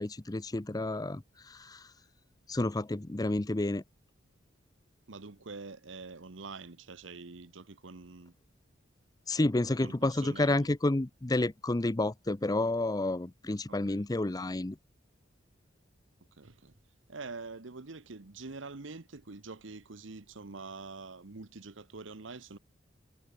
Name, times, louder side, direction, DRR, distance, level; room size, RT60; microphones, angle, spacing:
voice 1, 0.0-1.9 2.5-3.8 9.3-14.8, left 2 dB, 20° left, 0.6 m, -30 dB
voice 2, 5.1-8.3 9.8-10.7 13.7-14.0 16.4-16.7 17.1-22.6, right 3 dB, 85° right, 1.1 m, -45 dB
head